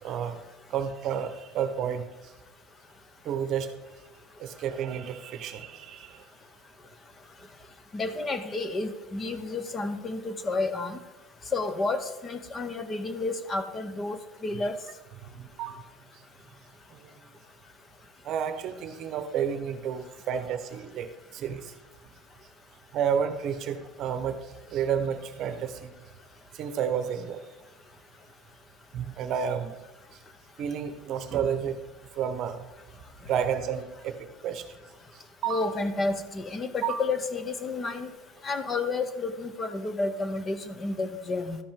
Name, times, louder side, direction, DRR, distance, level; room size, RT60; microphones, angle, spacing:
voice 1, 0.0-0.4 0.7-2.0 3.2-3.7 4.4-6.2 15.3-15.8 16.9-17.1 18.2-21.7 22.9-25.9 26.5-27.4 28.9-29.8 30.6-31.8 32.2-32.6 33.2-34.7 35.4-35.7 36.8-37.0, right 8 dB, 45° right, 9 dB, 0.9 m, -31 dB
voice 2, 7.9-11.0 11.5-14.8 35.5-38.1 38.4-41.6, left 3 dB, 25° left, 11 dB, 0.8 m, -31 dB
13.0 x 5.1 x 3.7 m, 1.1 s
supercardioid pair, 135°, 0 cm